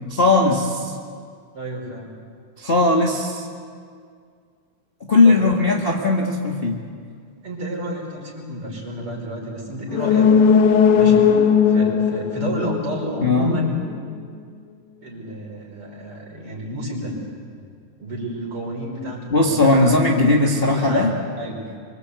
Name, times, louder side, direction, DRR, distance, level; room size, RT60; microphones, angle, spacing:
voice 1, 0.1-0.9 2.6-3.5 5.1-6.8 13.2-13.5 19.3-21.1, left 2 dB, 25° left, -1 dB, 1.3 m, -18 dB
voice 2, 1.5-2.1 5.2-5.4 5.8-5.9 7.4-10.3 10.9-11.3 11.7-13.8 15.0-17.1 18.0-20.1 20.4-21.1 21.4-21.6, equal, 40° right, -1 dB, 6.0 m, -30 dB
sound 1, 9.9-13.6 13.9-14.0, left 6 dB, 70° left, 2.4 m, -17 dB
25.0 x 25.0 x 8.3 m, 2.1 s
omnidirectional pair, 3.9 m